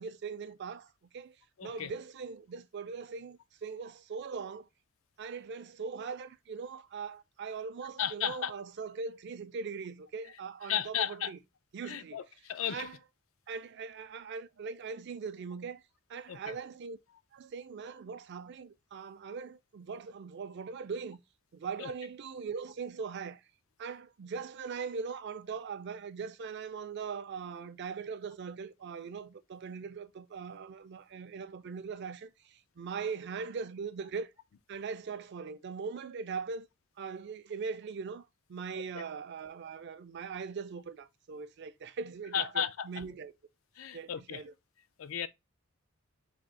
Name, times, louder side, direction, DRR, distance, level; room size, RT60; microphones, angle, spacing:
voice 1, 0.0-1.4 1.6-4.7 5.2-11.4 11.7-12.2 12.7-12.9 13.5-15.8 16.1-17.0 17.3-21.2 21.5-23.4 23.8-34.3 34.7-36.7 37.0-43.3 43.9-44.5, right 5 dB, 55° right, 0.4 m, -40 dB
voice 2, 1.6-1.9 8.0-8.6 10.6-11.3 11.8-12.9 16.3-16.6 21.8-21.9 42.3-43.0 43.8-44.4 45.0-45.3, left 9 dB, 70° left, 0.4 m, -34 dB
3.5 x 2.7 x 3.9 m
head